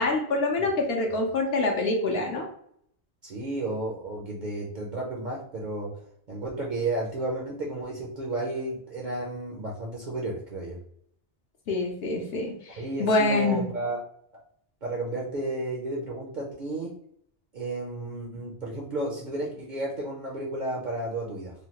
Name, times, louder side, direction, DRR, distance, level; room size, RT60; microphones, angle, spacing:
voice 1, 0.0-2.5 11.7-13.7, left 2 dB, 65° left, 0 dB, 0.8 m, -26 dB
voice 2, 3.2-5.9 6.3-10.8 12.8-14.0 14.3-14.4 14.8-16.9 17.5-21.5, right 2 dB, 50° right, -2 dB, 0.6 m, -32 dB
3.1 x 2.3 x 2.8 m, 0.67 s
omnidirectional pair, 1.2 m